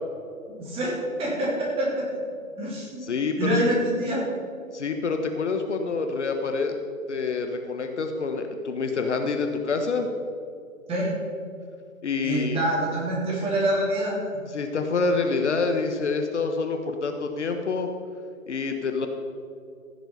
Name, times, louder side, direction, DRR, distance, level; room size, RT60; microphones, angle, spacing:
voice 1, 0.5-2.1 2.6-3.0 3.4-4.2 10.9-11.1 12.2-14.4, right 1 dB, 15° right, -4 dB, 2.9 m, -26 dB
voice 2, 3.0-3.6 4.7-6.8 7.1-10.1 12.0-12.6 14.5-17.9 18.5-19.1, left 4 dB, 55° left, 5 dB, 1.2 m, -27 dB
15.0 x 8.0 x 5.5 m, 2.4 s
figure-of-eight pair, 135°, 42 cm